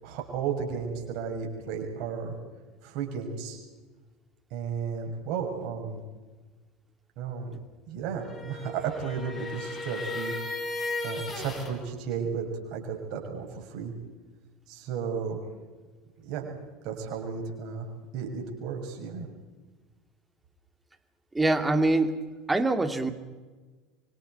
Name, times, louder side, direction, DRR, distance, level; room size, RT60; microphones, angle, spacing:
voice 1, 0.0-2.4 2.8-3.6 4.5-6.0 7.2-7.5 7.9-10.3 10.6-10.8 11.0-13.9 14.7-15.4 16.2-16.5 16.8-17.9 18.1-19.3, right 6 dB, 55° right, 1 dB, 6.5 m, -33 dB
sound 1, 8.1-11.7, left 2 dB, 30° left, 7.8 m, -35 dB
voice 2, 21.3-22.1 22.5-23.1, right 2 dB, 10° right, 8 dB, 2.4 m, -24 dB
27.5 x 25.0 x 4.7 m, 1.3 s
figure-of-eight pair, 75°, 0 cm